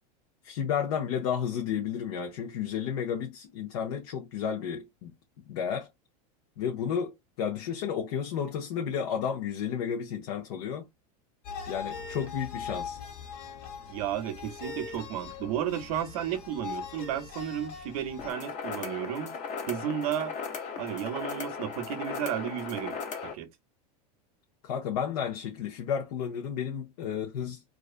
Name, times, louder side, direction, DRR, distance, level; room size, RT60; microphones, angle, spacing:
voice 1, 0.4-5.1 5.5-5.9 6.6-10.9 11.7-13.0 24.6-27.6, left 8 dB, 70° left, 0.6 m, -32 dB
sound 1, 11.4-18.3, left 6 dB, 55° left, 1.2 m, -41 dB
voice 2, 13.9-19.3 19.7-20.3 20.8-23.0 23.2-23.5, right 10 dB, 70° right, 0.6 m, -33 dB
sound 2, 18.2-23.3, left 5 dB, 40° left, 0.8 m, -37 dB
2.4 x 2.3 x 2.4 m
supercardioid pair, 110°, 20 cm